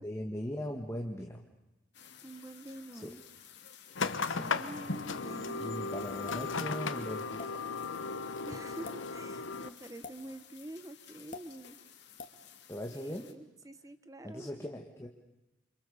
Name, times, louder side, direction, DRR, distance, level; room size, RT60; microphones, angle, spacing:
voice 1, 0.0-1.4 2.9-3.1 4.2-4.5 5.6-7.6 12.7-13.4 14.2-15.1, equal, 15° left, 1 dB, 1.7 m, -40 dB
sound 1, 1.9-13.3, left 9 dB, 55° left, 3.0 m, -55 dB
voice 2, 2.2-3.2 4.3-5.7 8.5-11.8 12.9-14.7, right 1 dB, 15° right, 12 dB, 0.9 m, -47 dB
sound 2, 3.9-9.7, left 4 dB, 75° left, 1.2 m, -36 dB
sound 3, 6.3-6.5 7.4-7.5 8.7-9.0 10.0-10.2 11.3-11.5 12.2-12.4, left 3 dB, 40° left, 2.3 m, -44 dB
29.0 x 26.0 x 7.0 m, 0.98 s
head